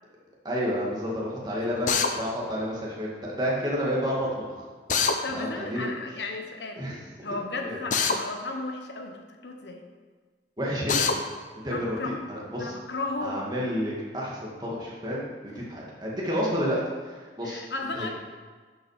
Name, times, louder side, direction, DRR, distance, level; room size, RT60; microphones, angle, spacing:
voice 1, 0.4-4.7 5.3-5.9 6.8-7.0 7.6-7.8 10.6-11.1 11.6-12.7 13.2-15.3 15.5-17.6 17.9-18.1, equal, 25° right, -5 dB, 2.1 m, -30 dB
Drill, 1.9-2.1 4.9-5.2 7.9-8.2 10.9-11.2, left 5 dB, 45° left, 0.7 m, -23 dB
voice 2, 5.0-6.8 7.2-9.8 11.7-12.2 12.6-13.4 17.4-18.1, left 3 dB, 75° left, 3 dB, 1.1 m, -34 dB
11.5 x 6.0 x 5.0 m, 1.5 s
head